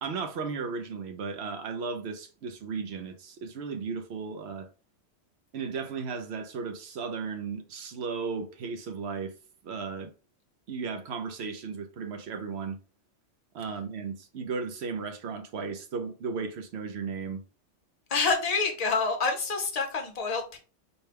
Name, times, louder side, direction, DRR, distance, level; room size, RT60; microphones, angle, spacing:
voice 1, 0.0-4.7 5.5-9.3 9.6-10.1 10.7-12.8 13.5-17.4, right 5 dB, 65° right, 0.9 m, -35 dB
voice 2, 18.1-20.6, left 4 dB, 35° left, 0.8 m, -27 dB
4.4 x 2.2 x 3.3 m
omnidirectional pair, 1.2 m